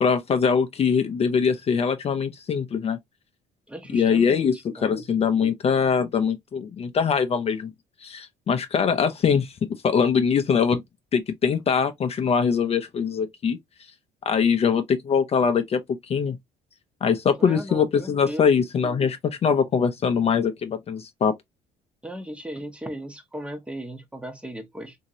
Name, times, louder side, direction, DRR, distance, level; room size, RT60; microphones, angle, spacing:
voice 1, 0.0-3.0 3.9-7.7 8.0-9.5 9.8-10.8 11.1-13.6 14.3-15.8 16.1-16.4 17.0-21.3, left 6 dB, 35° left, 0.5 m, -22 dB
voice 2, 3.7-5.0 17.4-18.5 22.0-25.0, right 1 dB, 5° right, 0.7 m, -37 dB
2.9 x 2.6 x 2.7 m
cardioid pair, 110°, 17 cm